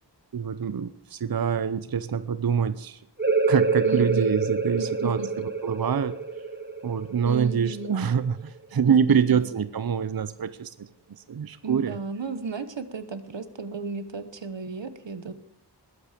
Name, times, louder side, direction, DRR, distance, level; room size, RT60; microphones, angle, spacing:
voice 1, 0.3-3.0 3.5-6.2 6.8-12.0, right 7 dB, 55° right, 13 dB, 0.6 m, -25 dB
sound 1, 3.2-8.6, right 4 dB, 25° right, 1.0 m, -27 dB
voice 2, 3.8-4.3 4.8-5.3 7.2-7.9 8.9-9.0 9.3-9.4 11.6-15.3, right 5 dB, 80° right, 11 dB, 1.2 m, -34 dB
20.5 x 8.7 x 5.1 m, 0.76 s
wide cardioid pair, 60°, 43 cm